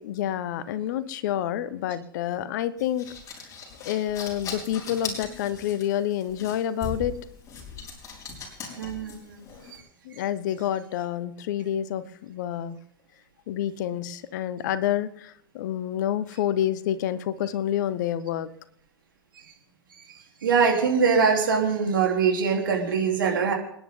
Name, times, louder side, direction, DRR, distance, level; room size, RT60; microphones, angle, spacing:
voice 1, 0.0-3.1 3.8-7.2 10.0-12.8 13.5-18.5, left 11 dB, 55° left, 15 dB, 1.1 m, -28 dB
sound 1, 2.8-9.8, left 5 dB, 25° left, 5.0 m, -39 dB
voice 2, 8.8-9.4 20.4-23.5, right 5 dB, 70° right, 1 dB, 3.5 m, -23 dB
28.0 x 10.0 x 3.8 m, 0.71 s
figure-of-eight pair, 90°, 12 cm